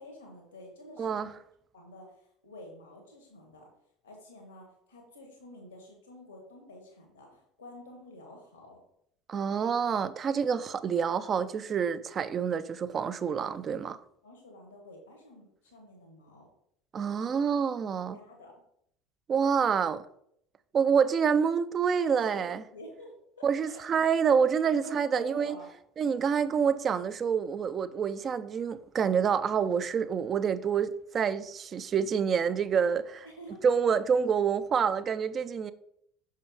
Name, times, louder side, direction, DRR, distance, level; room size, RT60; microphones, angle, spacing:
voice 1, 0.0-1.3 1.7-3.7 4.0-8.8 14.2-16.5 17.1-17.3 18.1-18.6 21.9-23.2 23.6-23.8 24.3-24.4 24.8-25.7 33.2-33.6, left 1 dB, 85° left, 1.4 m, -49 dB
voice 2, 1.0-1.3 9.3-14.0 16.9-18.2 19.3-20.0 20.7-22.6 23.4-25.6 26.0-33.3 33.6-35.7, right 6 dB, 35° right, 0.4 m, -27 dB
6.0 x 5.5 x 3.5 m
figure-of-eight pair, 65°, 0 cm